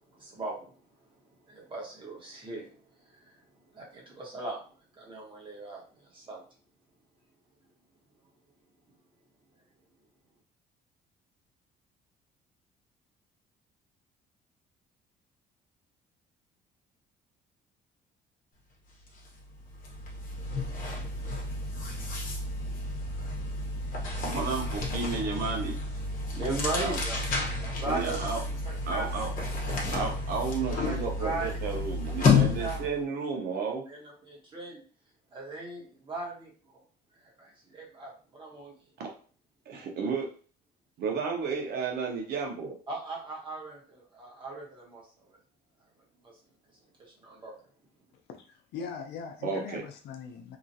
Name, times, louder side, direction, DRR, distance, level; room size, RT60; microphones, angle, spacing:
voice 1, 0.1-0.7 1.5-2.8 3.1-3.3 3.7-4.6 5.0-6.4 24.2-24.4 25.2-25.3 26.3-27.2 27.6-29.1 29.7-29.9 30.8-31.7 32.1-32.8 33.9-34.8 35.3-36.8 37.4-38.7 42.9-45.0 45.3-45.4 46.2-46.3 47.0-47.5, right 2 dB, 30° right, -3 dB, 1.3 m, -38 dB
sound 1, 19.1-19.3 19.6-33.0, left 3 dB, 55° left, 1.0 m, -31 dB
voice 2, 24.2-25.8 26.8-27.0 27.8-28.4 28.9-29.3 29.9-33.8 39.0-39.1 39.7-40.3 41.0-42.8 49.4-49.8, right 5 dB, 70° right, 1 dB, 0.8 m, -32 dB
voice 3, 48.3-50.6, left 6 dB, 75° left, 4 dB, 0.6 m, -41 dB
2.9 x 2.4 x 2.7 m, 0.40 s
cardioid pair, 110°, 17 cm